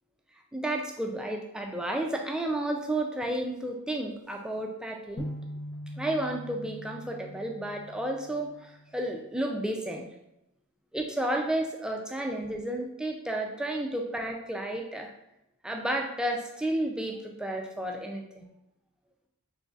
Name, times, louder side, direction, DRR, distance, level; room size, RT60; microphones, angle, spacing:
voice 1, 0.5-5.3 6.0-10.0 10.9-15.1 15.6-18.4, right 1 dB, 5° right, 1 dB, 0.3 m, -32 dB
sound 1, 5.2-9.2, equal, 60° left, 0.6 m, -42 dB
3.8 x 3.1 x 2.4 m, 0.86 s
head